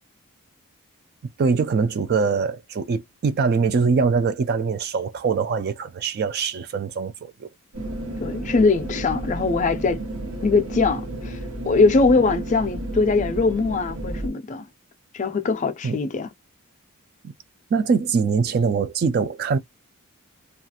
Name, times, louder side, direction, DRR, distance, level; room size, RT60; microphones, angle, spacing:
voice 1, 1.4-7.5 15.8-16.0 17.2-17.3 17.7-19.6, right 5 dB, 45° right, 0.3 m, -23 dB
sound 1, 7.7-14.3, right 1 dB, 70° right, 0.8 m, -32 dB
voice 2, 8.2-10.0 10.4-11.4 11.7-14.7 15.1-16.3, left 4 dB, 35° left, 0.4 m, -21 dB
2.4 x 2.3 x 2.7 m
head